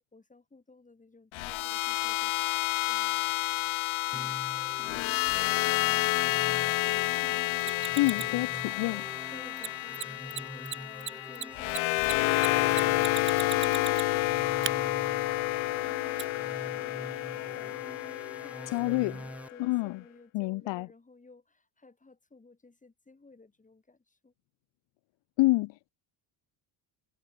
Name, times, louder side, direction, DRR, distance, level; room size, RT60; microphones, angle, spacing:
voice 1, 0.0-3.2 3.5-4.4 9.3-24.3, left 3 dB, 15° left, 7.0 m, -56 dB
sound 1, 1.3-19.5, left 20 dB, 90° left, 1.2 m, -30 dB
sound 2, 4.1-19.5, right 1 dB, 5° right, 1.4 m, -46 dB
Mechanisms, 7.6-8.4 9.6-9.7 9.9-10.0 10.3-10.4 10.7-14.2 14.6-14.7 16.2-16.3, right 9 dB, 25° right, 0.4 m, -36 dB
voice 2, 8.0-9.0 18.7-19.1 19.6-20.0 20.3-20.9 25.4-25.9, left 21 dB, 70° left, 0.5 m, -27 dB
cardioid pair, 130°, 46 cm